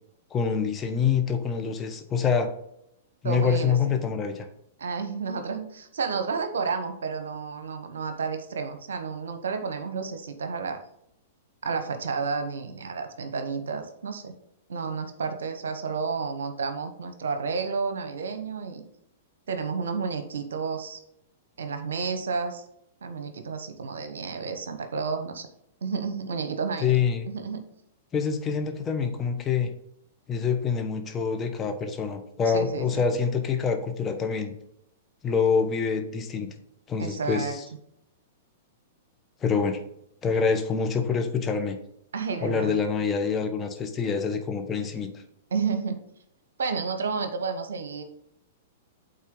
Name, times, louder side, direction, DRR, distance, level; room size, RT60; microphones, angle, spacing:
voice 1, 0.3-2.5 3.2-4.5 26.8-27.3 28.1-29.7 30.3-34.5 35.2-36.5 36.9-37.6 39.4-39.8 40.2-41.8 42.4-45.1, left 6 dB, 20° left, 5 dB, 1.0 m, -26 dB
voice 2, 3.2-4.0 4.8-10.8 11.6-14.3 14.7-18.9 19.5-21.0 21.6-22.6 23.0-25.5 25.8-27.0 27.3-27.6 32.5-33.0 37.0-37.6 42.1-42.8 45.5-46.0 46.6-48.0, right 5 dB, 75° right, 8 dB, 1.0 m, -31 dB
8.5 x 4.0 x 3.8 m, 0.76 s
hypercardioid pair, 110°, 0 cm